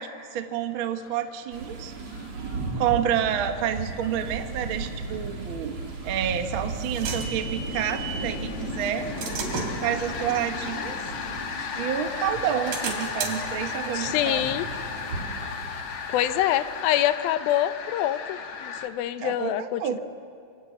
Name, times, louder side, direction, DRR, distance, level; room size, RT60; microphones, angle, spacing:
voice 1, 0.0-1.9 2.8-5.8 6.0-9.1 9.8-11.0 11.8-14.4 19.2-20.0, right 9 dB, 65° right, 6 dB, 1.3 m, -29 dB
sound 1, 0.8-18.9, left 6 dB, 55° left, 2.0 m, -36 dB
sound 2, 1.5-16.8, right 3 dB, 45° right, 3.8 m, -37 dB
sound 3, 6.4-8.3 8.8-11.9 12.3-15.8, right 4 dB, 80° right, 4.3 m, -37 dB
voice 2, 13.9-14.7 16.1-20.0, left 12 dB, 90° left, 12 dB, 2.7 m, -26 dB
26.5 x 23.0 x 8.0 m, 2.3 s
omnidirectional pair, 4.1 m